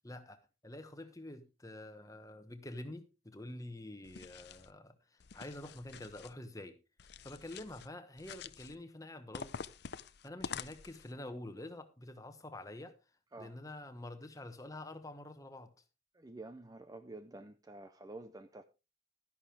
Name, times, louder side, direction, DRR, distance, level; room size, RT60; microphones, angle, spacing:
voice 1, 0.0-6.8 7.2-9.5 10.2-12.9 13.4-15.7, left 1 dB, 15° left, 1.1 m, -47 dB
sound 1, 4.0-4.7 5.2-6.3 7.0-7.9 8.2-8.8 9.3-11.1, left 6 dB, 55° left, 0.5 m, -47 dB
voice 2, 16.1-18.6, right 2 dB, 20° right, 0.5 m, -49 dB
12.0 x 11.0 x 3.4 m
head